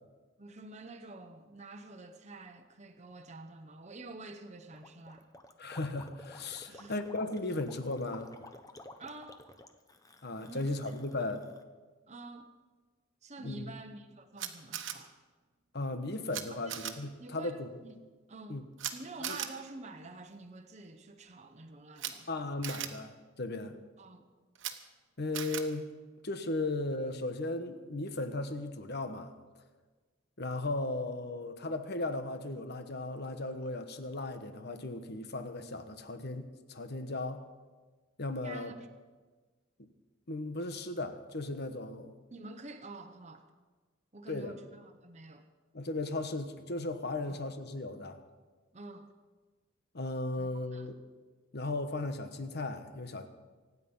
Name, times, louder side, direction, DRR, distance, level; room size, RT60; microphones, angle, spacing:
voice 1, 0.4-5.3 6.7-7.0 9.0-9.4 10.5-10.8 11.2-11.3 12.1-12.5 13.2-15.2 16.6-16.8 17.2-18.0 18.3-18.7 18.9-22.4 24.0-24.3 38.4-38.9 42.3-43.5 44.1-45.5 47.2-47.4 48.7-49.1 50.4-50.9, right 2 dB, 35° right, 5 dB, 1.0 m, -48 dB
Gurgling, 4.7-11.6, left 2 dB, 15° left, 0.9 m, -52 dB
voice 2, 5.6-8.3 10.2-11.5 13.4-13.6 15.7-17.7 18.5-18.6 19.2-19.4 22.3-23.8 25.2-25.9 26.2-29.3 30.4-37.4 38.2-38.7 40.3-42.1 44.3-44.6 45.7-48.2 49.9-51.0 51.5-53.3, left 2 dB, 55° left, 8 dB, 1.2 m, -36 dB
Camera, 14.4-14.9 16.3-16.4 16.7-16.9 18.8-18.9 19.2-19.5 22.0-22.1 22.6-22.9 24.6-24.7 25.3-25.6, right 10 dB, 60° right, 1.3 m, -37 dB
25.0 x 9.5 x 5.5 m, 1.3 s
head